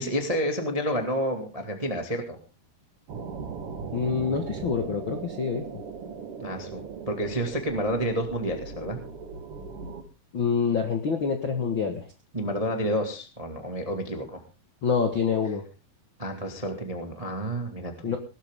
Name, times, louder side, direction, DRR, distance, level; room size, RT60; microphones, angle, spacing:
voice 1, 0.0-2.4 6.4-9.0 12.3-14.4 16.2-18.1, equal, 20° right, 4 dB, 1.1 m, -30 dB
sound 1, 3.1-10.0, right 5 dB, 55° right, 1.8 m, -38 dB
voice 2, 3.9-5.6 10.3-12.1 14.8-15.6 18.0-18.2, left 6 dB, 55° left, 5 dB, 1.4 m, -26 dB
19.0 x 13.0 x 3.7 m, 0.32 s
omnidirectional pair, 4.6 m